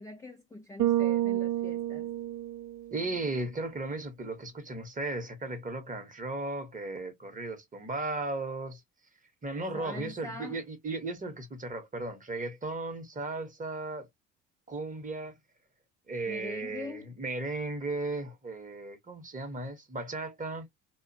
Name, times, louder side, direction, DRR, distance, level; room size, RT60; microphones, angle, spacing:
voice 1, 0.0-2.1 9.7-10.6 16.3-17.1, left 2 dB, 10° left, 0.4 m, -43 dB
Bass guitar, 0.8-3.1, right 13 dB, 50° right, 0.5 m, -29 dB
voice 2, 2.9-8.8 9.4-14.1 14.7-15.4 16.1-20.7, right 2 dB, 20° right, 0.8 m, -36 dB
2.4 x 2.1 x 2.5 m
hypercardioid pair, 75°, 39 cm